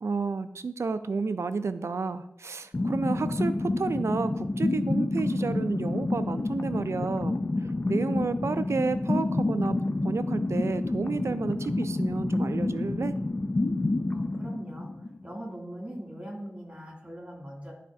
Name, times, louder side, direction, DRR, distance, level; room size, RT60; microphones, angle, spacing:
voice 1, 0.0-7.4 7.9-9.8 10.0-13.1, right 4 dB, 85° right, 11 dB, 0.4 m, -31 dB
sound 1, 2.7-15.4, left 2 dB, 40° left, 0.4 m, -29 dB
voice 2, 14.1-14.9 15.2-17.7, right 1 dB, 25° right, -2 dB, 2.5 m, -41 dB
12.5 x 4.1 x 2.7 m, 0.78 s
wide cardioid pair, 65°, 5 cm